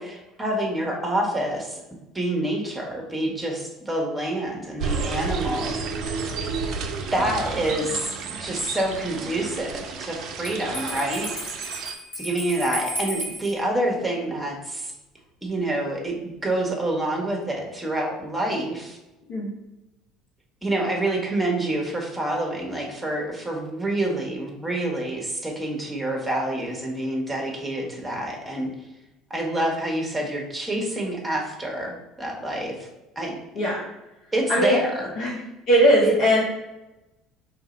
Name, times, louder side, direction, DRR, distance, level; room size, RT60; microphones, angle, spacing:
voice 1, 0.0-1.8 2.1-6.2 7.1-8.1 8.4-11.3 12.1-14.9 15.4-19.0 20.6-28.7 29.3-32.8 33.1-33.3 34.3-35.1 36.0-36.1, right 1 dB, 10° right, 0 dB, 1.1 m, -27 dB
sound 1, 4.8-11.9, right 4 dB, 55° right, 0.4 m, -31 dB
Bell, 10.4-13.5, equal, 85° left, 1.2 m, -34 dB
voice 2, 34.5-34.8 35.2-35.4 35.7-36.4, equal, 55° left, -6 dB, 0.9 m, -19 dB
3.1 x 2.6 x 4.1 m, 0.98 s
figure-of-eight pair, 60°, 0 cm